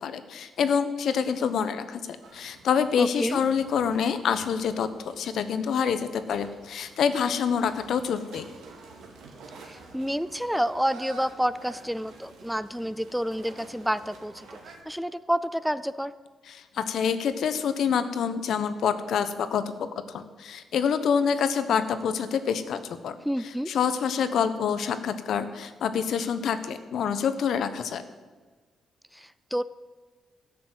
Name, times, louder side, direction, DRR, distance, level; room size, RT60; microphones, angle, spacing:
voice 1, 0.0-8.5 16.5-19.7 20.1-23.2 23.7-28.0, left 7 dB, 70° left, 11 dB, 0.9 m, -27 dB
sound 1, 2.2-14.8, right 2 dB, 85° right, 2.3 m, -49 dB
voice 2, 3.0-3.4 9.7-14.5 14.9-16.1 23.2-23.7 29.1-29.6, equal, ahead, 15 dB, 0.3 m, -29 dB
13.0 x 6.8 x 7.9 m, 1.4 s
cardioid pair, 125°, 0 cm